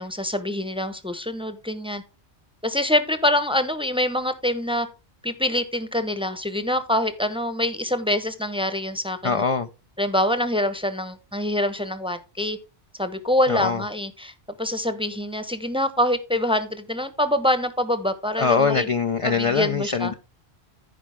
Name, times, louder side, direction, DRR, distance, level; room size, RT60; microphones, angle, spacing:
voice 1, 0.0-2.0 2.6-4.9 5.2-9.4 10.0-12.6 13.0-18.9 19.2-20.1, left 1 dB, 5° right, 0.8 m, -25 dB
voice 2, 9.2-9.7 13.5-13.8 18.4-20.1, left 5 dB, 40° left, 0.5 m, -22 dB
15.0 x 5.0 x 3.4 m
omnidirectional pair, 1.1 m